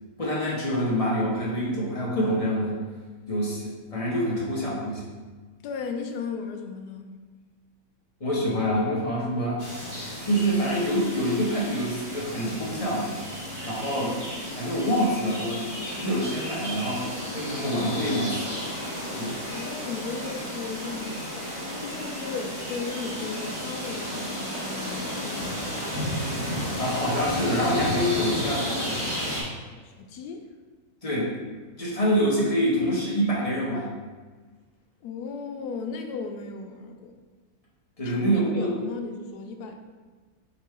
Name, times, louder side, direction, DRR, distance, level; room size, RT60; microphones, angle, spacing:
voice 1, 0.2-2.8 3.3-5.0 8.2-9.6 10.2-13.1 13.6-14.2 14.5-18.6 19.1-19.4 26.8-29.0 31.0-31.3 31.8-33.9 38.0-38.7, equal, 30° left, -6 dB, 0.8 m, -26 dB
voice 2, 5.6-7.1 19.5-21.3 21.8-25.8 29.8-30.5 35.0-37.1 38.0-38.2 38.6-39.8, left 5 dB, 90° left, 5 dB, 1.1 m, -36 dB
sound 1, 9.6-29.4, equal, 15° right, 1.4 m, -33 dB
3.8 x 3.0 x 4.6 m, 1.4 s
omnidirectional pair, 1.6 m